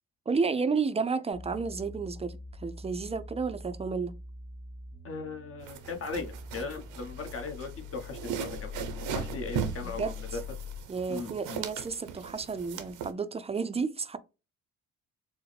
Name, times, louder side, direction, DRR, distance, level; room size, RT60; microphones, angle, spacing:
voice 1, 0.3-4.1 9.8-10.2 10.9-14.2, right 5 dB, 20° right, 0.4 m, -31 dB
sound 1, 1.3-10.9, left 5 dB, 25° left, 1.7 m, -43 dB
voice 2, 5.0-8.7 9.1-10.4 11.1-11.6, left 4 dB, 50° left, 1.1 m, -38 dB
sound 2, 5.6-13.1, right 8 dB, 90° right, 0.7 m, -39 dB
4.7 x 2.1 x 3.2 m
cardioid pair, 90°, 30 cm